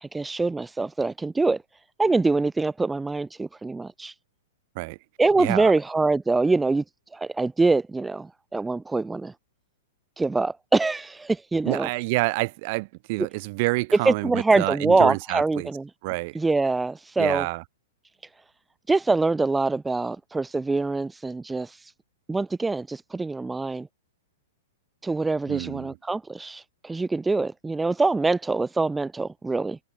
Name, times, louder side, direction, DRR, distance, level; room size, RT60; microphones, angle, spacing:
voice 1, 0.0-1.6 2.0-4.1 5.2-6.8 7.1-9.3 10.2-11.9 14.1-15.8 16.3-17.4 18.9-21.9 22.3-23.9 25.0-29.8, right 3 dB, 5° right, 0.3 m, -24 dB
voice 2, 5.4-5.7 11.6-15.7 16.0-16.4 17.2-17.6 25.5-26.0, right 26 dB, 40° right, 1.0 m, -28 dB
hypercardioid pair, 160°, 0 cm